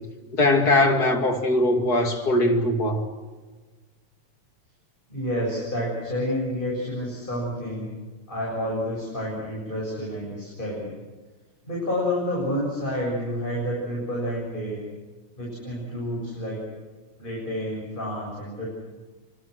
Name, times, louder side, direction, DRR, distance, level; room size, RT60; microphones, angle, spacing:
voice 1, 0.3-3.0, left 1 dB, 30° left, 4 dB, 2.9 m, -21 dB
voice 2, 5.1-7.9 8.3-10.9 11.7-14.8 15.4-16.6 17.2-18.7, equal, 15° left, -3 dB, 7.5 m, -29 dB
28.5 x 25.0 x 6.5 m, 1.3 s
omnidirectional pair, 3.5 m